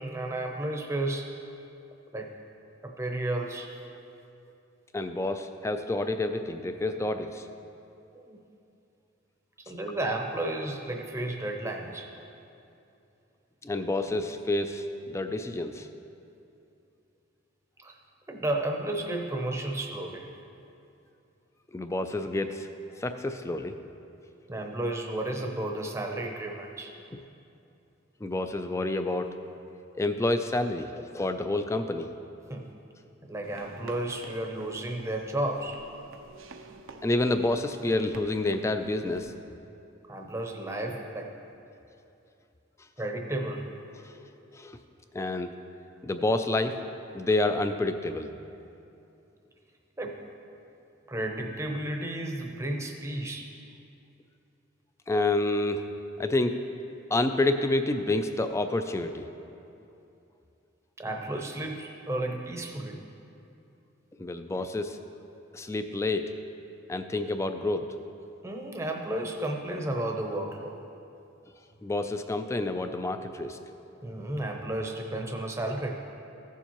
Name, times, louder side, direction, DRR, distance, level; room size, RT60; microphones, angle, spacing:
voice 1, 0.0-1.3 2.1-2.3 2.8-3.7 8.1-8.4 9.7-12.1 17.8-18.0 18.3-20.3 24.5-27.0 32.5-32.6 33.2-35.8 40.1-41.3 43.0-43.7 50.0-50.2 51.1-53.5 61.0-63.0 68.4-70.8 74.0-76.0, right 1 dB, 15° right, 2 dB, 0.7 m, -32 dB
voice 2, 4.9-7.5 13.6-15.9 21.7-22.7 23.0-23.8 28.2-29.3 30.0-32.1 37.0-39.3 44.0-44.1 44.5-44.8 45.1-45.5 46.0-46.8 47.1-48.3 55.1-55.9 56.2-56.6 57.1-59.3 64.2-65.0 65.5-66.3 66.9-67.9 71.8-73.6, left 2 dB, 15° left, 8 dB, 0.3 m, -28 dB
sound 1, 33.4-39.4, right 3 dB, 90° right, 0.6 m, -49 dB
15.5 x 7.1 x 3.0 m, 2.7 s
head